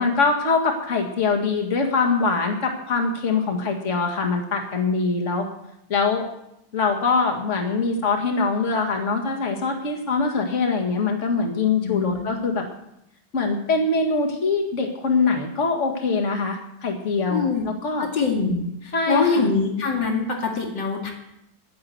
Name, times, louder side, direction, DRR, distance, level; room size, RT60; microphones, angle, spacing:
voice 1, 0.0-5.5 5.9-6.3 6.7-12.6 13.3-17.5 17.8-18.1 18.9-19.4, left 4 dB, 40° left, 2 dB, 2.2 m, -23 dB
voice 2, 11.8-12.3 17.3-17.6 18.0-21.1, left 4 dB, 85° left, 1 dB, 3.0 m, -24 dB
11.0 x 10.5 x 7.8 m, 0.81 s
omnidirectional pair, 1.9 m